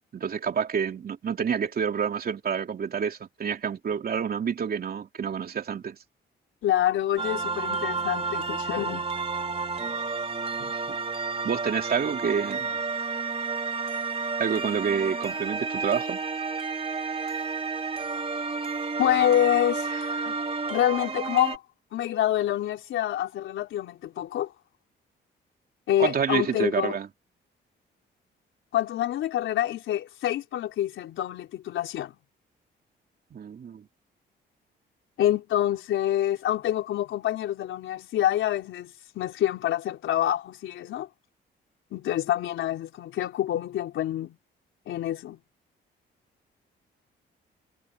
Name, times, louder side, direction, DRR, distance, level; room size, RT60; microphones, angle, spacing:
voice 1, 0.1-6.0 10.6-11.0 11.4-12.8 14.4-16.2 26.0-27.1 33.3-33.9, right 7 dB, 50° right, 3.1 m, -28 dB
voice 2, 6.6-9.0 19.0-20.4 20.7-21.6 21.9-24.5 25.9-27.0 28.7-32.2 35.2-41.1 41.9-44.4 44.9-45.4, left 12 dB, 80° left, 3.7 m, -27 dB
sound 1, 7.2-21.6, right 4 dB, 30° right, 3.4 m, -31 dB
cardioid pair, 90°, 20 cm